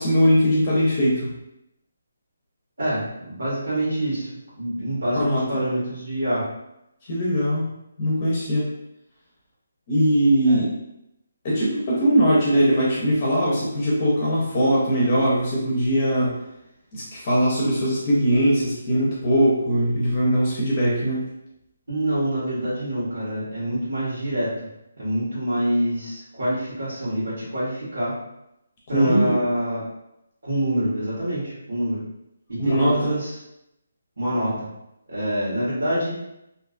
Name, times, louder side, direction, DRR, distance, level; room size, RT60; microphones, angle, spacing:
voice 1, 0.0-1.3 5.1-5.5 7.0-7.7 8.0-8.7 9.9-10.7 11.4-16.4 16.9-21.2 28.9-29.4 32.6-33.1, equal, 30° left, -6 dB, 0.5 m, -20 dB
voice 2, 2.8-4.3 4.5-6.4 10.5-10.6 21.9-24.5 25.0-28.2 28.9-29.8 30.4-32.0 32.5-33.3 34.2-34.7 35.1-36.1, right 1 dB, 85° right, -9 dB, 1.2 m, -26 dB
2.5 x 2.3 x 2.4 m, 0.85 s
hypercardioid pair, 170°, 0 cm